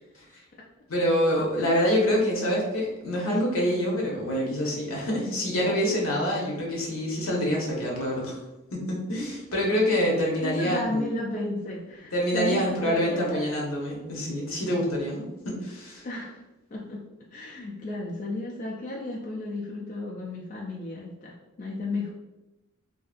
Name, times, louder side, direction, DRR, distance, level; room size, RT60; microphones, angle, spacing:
voice 1, 0.9-8.4 8.7-11.1 12.1-16.1, equal, 75° left, -2 dB, 0.8 m, -26 dB
voice 2, 10.3-13.5 16.0-16.4 16.7-17.0 17.3-22.1, left 2 dB, 35° left, -3 dB, 0.3 m, -33 dB
2.7 x 2.4 x 2.3 m, 0.98 s
head